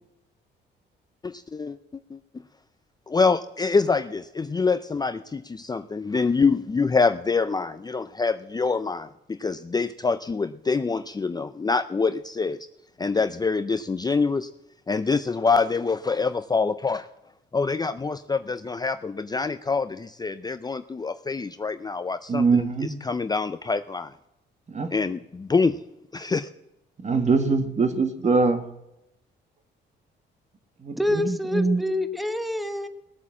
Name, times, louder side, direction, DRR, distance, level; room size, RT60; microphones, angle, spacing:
voice 1, 1.2-2.2 3.1-12.6 13.0-14.5 14.9-17.1 17.5-22.7 23.0-24.1 24.9-25.8 26.1-26.5, left 4 dB, 20° left, 11 dB, 0.5 m, -25 dB
voice 2, 22.3-22.9 24.7-24.9 27.0-28.7 30.8-31.8, right 4 dB, 35° right, 8 dB, 1.8 m, -23 dB
voice 3, 31.0-32.9, left 1 dB, ahead, 10 dB, 1.1 m, -27 dB
18.0 x 8.2 x 7.5 m, 0.86 s
cardioid pair, 90°, 20 cm